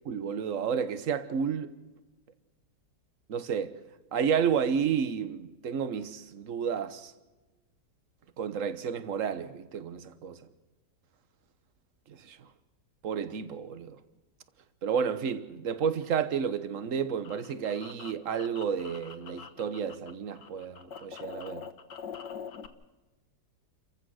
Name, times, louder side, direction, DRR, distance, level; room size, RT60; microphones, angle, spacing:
voice 1, 0.0-1.7 3.3-3.8 4.1-7.1 8.4-10.4 12.1-12.5 13.0-14.0 14.8-21.7, right 7 dB, 50° right, 1.4 m, -31 dB
sound 1, 16.7-20.1 20.4-22.7, left 7 dB, 85° left, 1.9 m, -44 dB
29.0 x 15.0 x 6.4 m
omnidirectional pair, 1.8 m